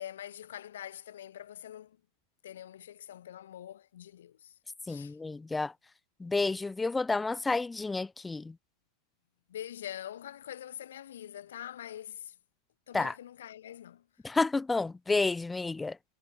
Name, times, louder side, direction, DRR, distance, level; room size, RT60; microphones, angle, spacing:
voice 1, 0.0-2.0 2.4-4.5 4.9-5.2 9.5-12.3 12.9-14.0, left 11 dB, 60° left, 6.2 m, -44 dB
voice 2, 4.9-5.7 6.2-8.5 12.9-13.1 14.2-16.0, left 3 dB, 10° left, 1.8 m, -30 dB
figure-of-eight pair, 90°, 0 cm